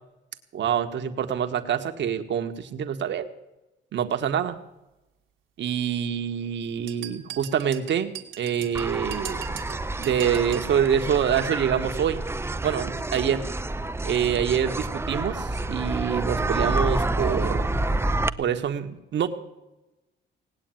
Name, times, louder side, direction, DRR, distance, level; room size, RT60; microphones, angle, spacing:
voice 1, 0.5-3.3 3.9-4.6 5.6-9.4 10.0-12.2 12.6-13.5 14.0-17.7 18.4-19.3, right 8 dB, 65° right, 7 dB, 1.5 m, -26 dB
sound 1, 6.9-10.7, right 11 dB, 85° right, 1.7 m, -40 dB
sound 2, 8.7-18.3, right 2 dB, 10° right, 0.6 m, -28 dB
18.5 x 8.4 x 9.1 m, 0.98 s
cardioid pair, 90°, 20 cm